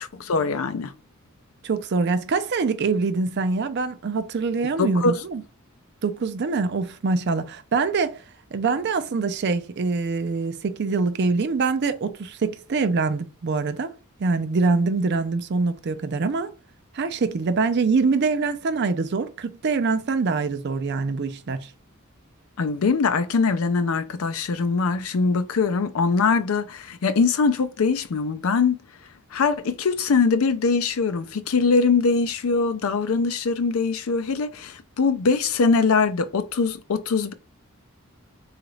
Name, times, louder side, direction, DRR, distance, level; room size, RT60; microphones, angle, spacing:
voice 1, 0.2-0.9 4.8-5.2 22.6-28.8 29.3-37.3, left 4 dB, 75° left, 0.5 m, -22 dB
voice 2, 1.6-5.4 6.0-8.2 8.5-13.9 14.2-16.5 16.9-21.7, right 4 dB, 50° right, 0.4 m, -24 dB
3.8 x 2.4 x 3.1 m
head